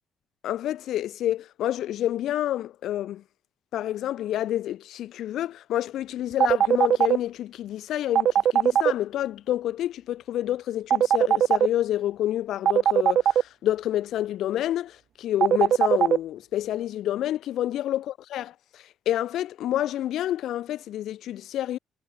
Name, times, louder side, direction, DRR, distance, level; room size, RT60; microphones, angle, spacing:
voice 1, 0.4-3.2 3.7-21.8, left 12 dB, 80° left, 1.3 m, -28 dB
sound 1, 6.4-7.2 8.2-8.9 10.9-11.7 12.7-13.4 15.4-16.2, right 9 dB, 65° right, 1.1 m, -19 dB
cardioid pair, 90°, 0 cm